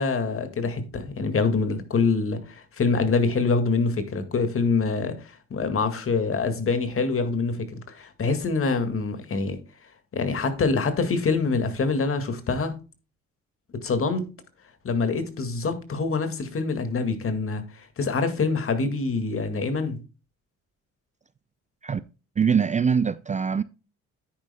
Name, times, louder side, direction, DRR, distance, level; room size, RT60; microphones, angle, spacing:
voice 1, 0.0-9.6 10.1-12.7 13.8-14.3 14.8-20.0, left 4 dB, 45° left, 2.0 m, -25 dB
voice 2, 22.4-23.6, right 6 dB, 25° right, 0.4 m, -23 dB
9.7 x 9.6 x 2.2 m
cardioid pair, 90°, 30 cm